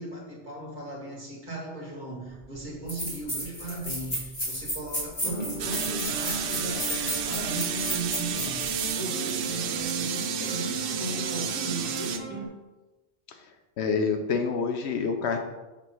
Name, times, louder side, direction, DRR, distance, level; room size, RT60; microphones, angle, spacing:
voice 1, 0.0-12.2, right 2 dB, 45° right, -2 dB, 1.6 m, -37 dB
sound 1, 2.3-2.4 2.9-8.7, equal, 40° left, 2.1 m, -33 dB
sound 2, 5.2-12.5, right 3 dB, 10° right, 1.4 m, -36 dB
sound 3, 5.6-12.2, right 8 dB, 60° right, 0.7 m, -32 dB
voice 2, 13.8-15.4, left 5 dB, 75° left, 5 dB, 1.0 m, -27 dB
6.8 x 3.1 x 5.5 m, 1.1 s
omnidirectional pair, 1.2 m